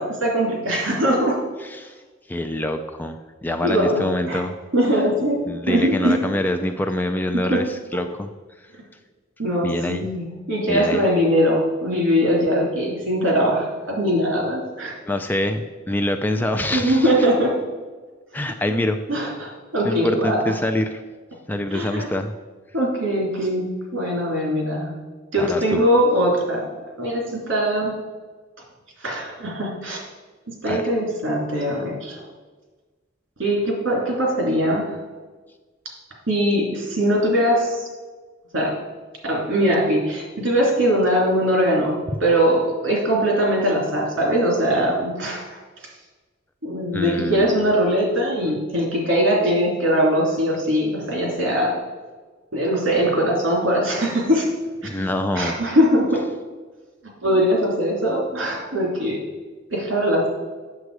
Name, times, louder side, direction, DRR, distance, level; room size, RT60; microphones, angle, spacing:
voice 1, 0.0-1.4 3.6-4.4 4.7-6.2 7.3-7.6 9.4-14.9 16.7-17.5 19.1-20.6 21.7-22.1 22.7-24.9 25.3-26.7 27.0-27.9 29.0-30.0 30.5-32.2 33.4-35.0 36.3-37.9 38.5-38.7 39.2-45.6 46.6-51.8 52.5-54.5 54.8-54.9 55.3-56.2 57.2-59.2 59.7-60.3, equal, 65° right, -1 dB, 2.9 m, -21 dB
voice 2, 1.6-2.0 2.3-4.6 5.5-8.3 9.6-10.1 10.7-11.0 15.1-17.1 18.3-19.0 19.8-21.0 21.5-22.3 25.4-25.8 30.7-30.8 46.9-47.6 54.8-55.6, left 1 dB, 10° left, 7 dB, 0.3 m, -25 dB
7.9 x 7.1 x 4.7 m, 1.3 s
head